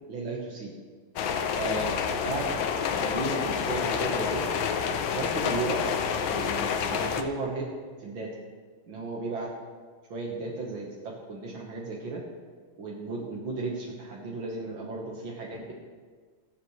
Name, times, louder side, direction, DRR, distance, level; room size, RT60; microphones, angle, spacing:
voice 1, 0.1-0.7 1.6-2.0 2.2-4.4 5.1-5.8 6.3-7.7 8.0-8.3 8.9-9.5 10.1-12.2 12.8-15.8, right 3 dB, 80° right, -2 dB, 2.1 m, -34 dB
sound 1, 1.2-7.2, left 7 dB, 80° left, 1.5 m, -28 dB
20.0 x 7.3 x 3.2 m, 1.5 s
omnidirectional pair, 2.1 m